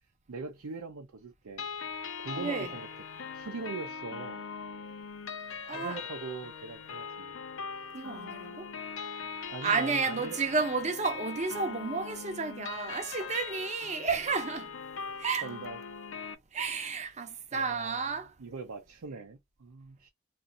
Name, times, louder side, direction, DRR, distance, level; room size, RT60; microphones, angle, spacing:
voice 1, 0.3-1.7 2.2-2.9 3.3-4.4 5.6-7.4 9.5-10.4 13.2-13.6 15.4-15.8 17.5-18.1 18.4-20.1, right 4 dB, 90° right, 0.5 m, -41 dB
sound 1, 1.6-16.3, left 6 dB, 65° left, 0.5 m, -41 dB
voice 2, 2.4-2.7 5.7-6.0 7.9-8.7 9.6-14.7 15.2-15.5 16.5-18.3, right 4 dB, 30° right, 0.6 m, -32 dB
2.5 x 2.5 x 3.8 m
head